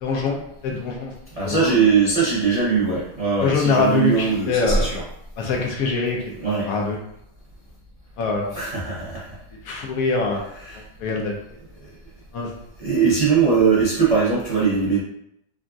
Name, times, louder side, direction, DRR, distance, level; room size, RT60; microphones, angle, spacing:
voice 1, 0.0-1.1 1.4-1.7 3.4-4.9 5.4-6.3 6.7-7.0 8.2-8.5 9.6-11.4 12.3-12.5, left 4 dB, 70° left, 0 dB, 0.9 m, -24 dB
voice 2, 1.4-5.0 6.4-6.7 8.5-9.3 10.5-10.8 11.8-11.9 12.8-15.0, right 5 dB, 80° right, -8 dB, 0.3 m, -20 dB
3.7 x 2.4 x 2.3 m, 0.76 s
omnidirectional pair, 1.7 m